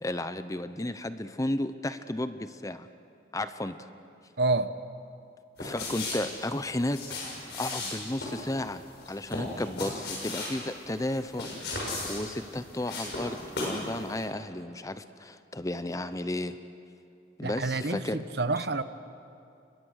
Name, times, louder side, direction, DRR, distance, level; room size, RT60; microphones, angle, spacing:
voice 1, 0.0-2.9 3.3-3.8 5.6-7.0 7.6-16.6 17.4-18.2, left 1 dB, 20° left, 11 dB, 0.7 m, -33 dB
voice 2, 4.4-4.7 17.4-18.8, right 3 dB, 60° right, 12 dB, 0.9 m, -28 dB
sound 1, 5.6-13.9 14.1-14.3, left 2 dB, 65° left, 7.0 m, -36 dB
30.0 x 23.0 x 6.5 m, 2.5 s
head